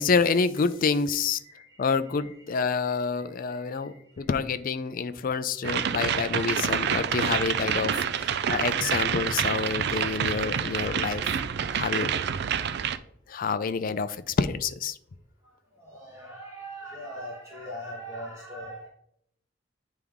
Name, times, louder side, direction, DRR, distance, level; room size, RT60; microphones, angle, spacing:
voice 1, 0.0-1.4 1.8-11.2 11.7-12.1 13.3-15.0, left 5 dB, 50° left, 11 dB, 0.4 m, -27 dB
voice 2, 1.4-4.0 8.6-8.7 15.8-18.9, equal, 15° right, -5 dB, 1.5 m, -42 dB
sound 1, 5.6-13.0, right 8 dB, 60° right, 0.4 m, -28 dB
9.5 x 3.5 x 3.5 m, 0.70 s
head